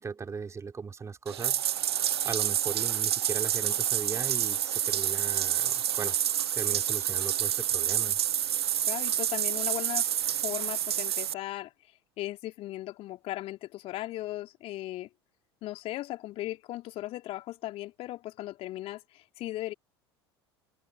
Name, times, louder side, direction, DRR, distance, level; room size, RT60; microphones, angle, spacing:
voice 1, 0.0-1.6 2.2-6.2 6.5-8.2, right 5 dB, 20° right, 3.8 m, -38 dB
Bathtub (filling or washing), 1.3-11.3, right 11 dB, 75° right, 0.6 m, -28 dB
voice 2, 8.9-10.1 10.4-15.1 15.6-19.7, left 16 dB, 45° left, 2.9 m, -37 dB
open air
figure-of-eight pair, 70°, 14 cm